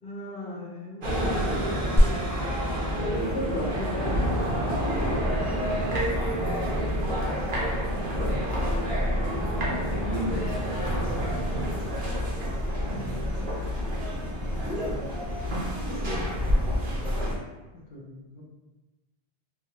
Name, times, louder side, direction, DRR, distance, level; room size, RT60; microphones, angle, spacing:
voice 1, 0.0-2.0 2.9-4.2 4.9-5.5 14.5-15.0 17.7-18.4, equal, 65° left, -4 dB, 0.8 m, -36 dB
sound 1, 1.0-17.4, equal, 75° right, 1.0 m, -28 dB
sound 2, 2.0-11.9, equal, 5° left, 0.4 m, -32 dB
voice 2, 6.3-8.6 9.5-12.1 15.9-16.2, equal, 40° right, -7 dB, 0.6 m, -36 dB
3.2 x 2.0 x 2.7 m, 1.1 s
omnidirectional pair, 1.0 m